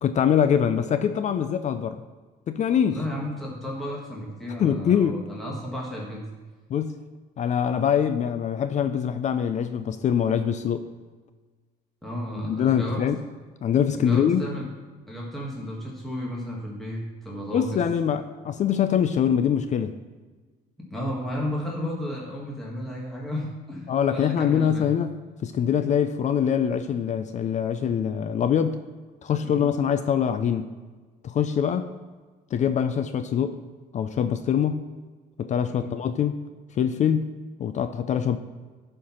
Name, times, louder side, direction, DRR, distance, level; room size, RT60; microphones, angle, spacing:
voice 1, 0.0-2.0 2.5-3.0 4.6-5.2 6.7-7.0 7.4-10.9 12.4-13.2 13.6-14.4 17.5-20.0 23.9-25.1 25.4-28.8 29.2-30.7 31.2-31.9 32.5-33.6 33.9-34.8 35.4-36.4 36.7-37.3 37.6-38.4, left 8 dB, 45° left, 10 dB, 0.5 m, -24 dB
voice 2, 2.9-6.2 12.0-13.0 14.0-14.7 15.1-17.8 20.9-24.9 29.4-29.6 35.7-36.0, equal, ahead, -3 dB, 1.6 m, -33 dB
11.0 x 4.5 x 5.6 m, 1.3 s
cardioid pair, 110°, 17 cm